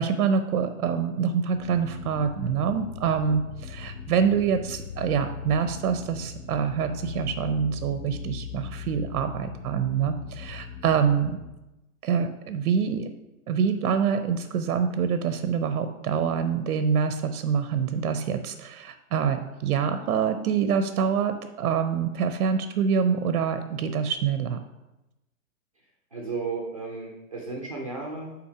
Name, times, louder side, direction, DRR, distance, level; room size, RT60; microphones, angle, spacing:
voice 1, 0.0-11.4 12.0-13.1 13.5-24.6, right 7 dB, 85° right, 9 dB, 0.6 m, -26 dB
sound 1, 1.5-11.5, left 6 dB, 45° left, 1.1 m, -40 dB
voice 2, 26.1-28.4, right 4 dB, 25° right, -1 dB, 0.3 m, -34 dB
5.8 x 3.8 x 4.8 m, 0.99 s
hypercardioid pair, 155°, 44 cm